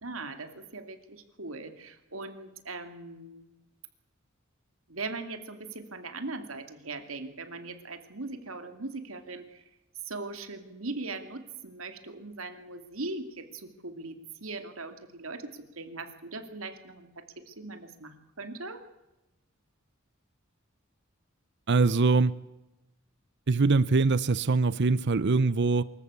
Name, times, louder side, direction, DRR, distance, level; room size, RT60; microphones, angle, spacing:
voice 1, 0.0-3.5 4.9-9.6 10.1-18.8, right 3 dB, 80° right, 8 dB, 2.4 m, -40 dB
voice 2, 21.7-22.3 23.5-25.8, right 3 dB, 60° right, 17 dB, 0.7 m, -23 dB
24.0 x 14.0 x 8.3 m, 0.99 s
head